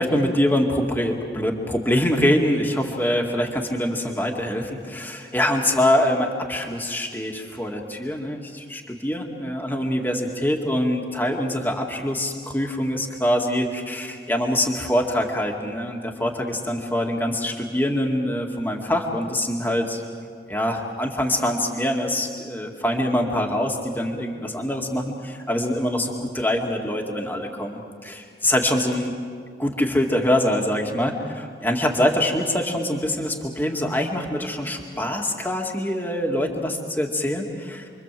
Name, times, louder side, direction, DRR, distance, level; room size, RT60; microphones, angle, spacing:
voice 1, 0.0-20.0 20.5-29.2 29.6-37.9, left 1 dB, 10° left, 1 dB, 2.3 m, -24 dB
29.0 x 24.0 x 7.7 m, 2.1 s
head